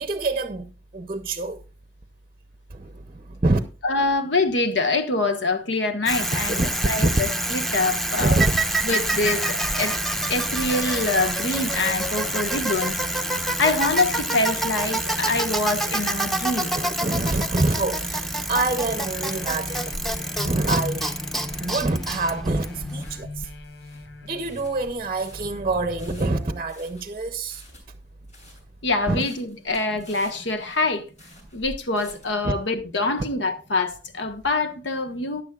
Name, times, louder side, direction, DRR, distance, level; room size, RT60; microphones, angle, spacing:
voice 1, 0.0-1.6 2.7-3.6 6.6-7.2 8.2-8.6 16.7-19.9 20.4-21.0 21.6-23.5 24.2-27.6 29.1-29.2 32.4-32.5, right 2 dB, 30° right, 0.6 m, -25 dB
voice 2, 3.8-6.6 6.9-8.3 8.8-10.0 10.3-13.0 13.6-16.7 28.8-31.0 31.5-35.4, left 2 dB, 80° left, 1.2 m, -25 dB
Bicycle, 6.1-23.1, right 1 dB, ahead, 0.7 m, -27 dB
sound 1, 18.9-26.1 26.6-26.7, left 2 dB, 65° left, 1.0 m, -38 dB
sound 2, 22.9-32.4, equal, 40° left, 6.8 m, -47 dB
15.0 x 10.0 x 2.4 m
head